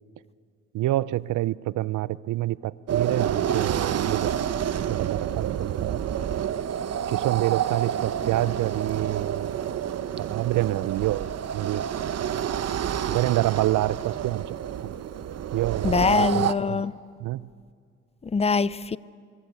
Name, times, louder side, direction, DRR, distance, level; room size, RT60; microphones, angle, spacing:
voice 1, 0.7-4.3 4.9-6.3 7.1-9.6 10.2-11.8 13.1-14.6 14.8-14.9 15.5-16.8 17.2-17.5, right 16 dB, 75° right, 19 dB, 0.6 m, -27 dB
sound 1, 2.9-16.5, right 9 dB, 55° right, 1.0 m, -29 dB
voice 2, 15.8-16.9 18.3-19.0, left 4 dB, 20° left, 19 dB, 0.6 m, -23 dB
25.5 x 23.0 x 8.3 m, 2.1 s
cardioid pair, 90°, 30 cm